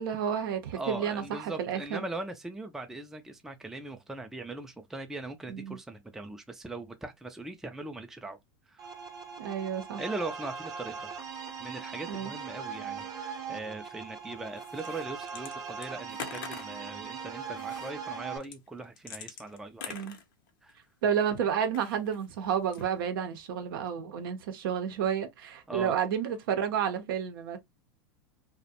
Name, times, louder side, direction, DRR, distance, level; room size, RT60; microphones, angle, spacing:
voice 1, 0.0-2.0 5.5-5.8 9.4-10.0 12.1-12.3 19.9-20.2 21.0-27.6, right 8 dB, 75° right, 0.6 m, -31 dB
voice 2, 0.7-8.4 8.7-8.9 10.0-11.1 11.6-20.0 20.6-20.8 25.7-25.9, right 2 dB, 5° right, 0.4 m, -40 dB
sound 1, 8.8-18.4, right 6 dB, 30° right, 0.7 m, -40 dB
sound 2, 14.6-15.5 15.8-16.8 17.6-17.9 18.4-20.8 21.6-22.3 22.6-23.1, left 7 dB, 70° left, 0.7 m, -44 dB
2.4 x 2.1 x 2.7 m
hypercardioid pair, 105°, 12 cm